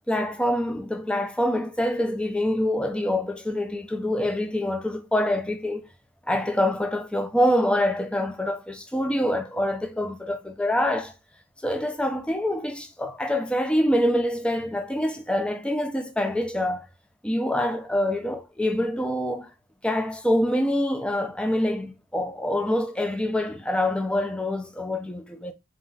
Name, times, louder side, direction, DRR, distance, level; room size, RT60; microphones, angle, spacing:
voice 1, 0.1-5.9 6.3-11.1 11.6-16.9 17.2-19.5 19.8-25.5, left 1 dB, 5° left, 0.5 m, -25 dB
4.0 x 2.4 x 3.8 m
head